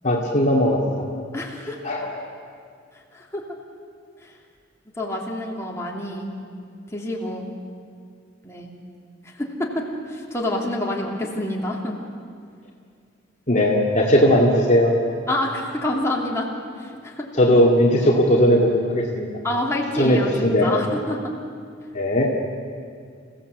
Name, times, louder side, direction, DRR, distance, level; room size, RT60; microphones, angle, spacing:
voice 1, 0.0-0.8 1.8-2.2 13.5-15.0 17.3-19.3 19.9-20.8 21.9-22.3, equal, 40° left, -1 dB, 2.2 m, -18 dB
voice 2, 1.3-1.9 3.1-3.4 5.0-6.3 6.9-7.5 8.4-8.7 9.2-12.0 15.3-16.5 16.8-17.3 19.4-21.2, left 1 dB, 15° left, -2 dB, 3.1 m, -27 dB
28.5 x 16.5 x 8.1 m, 2.2 s
head